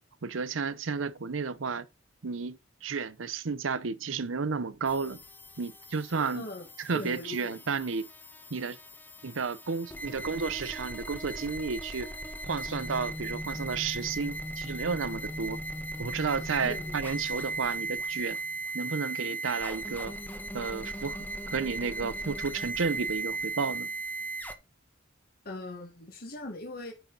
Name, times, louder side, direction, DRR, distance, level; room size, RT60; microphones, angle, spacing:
voice 1, 0.2-1.9 2.2-5.2 5.6-6.4 6.9-8.1 8.5-8.8 9.2-12.1 12.4-15.6 16.0-18.4 18.7-20.2 20.5-23.9, right 5 dB, 75° right, 0.7 m, -32 dB
sound 1, 4.9-24.5, right 2 dB, 10° left, 1.1 m, -38 dB
voice 2, 6.2-7.6 16.6-17.0 25.4-26.9, left 1 dB, 50° left, 1.7 m, -40 dB
9.2 x 5.9 x 3.9 m
head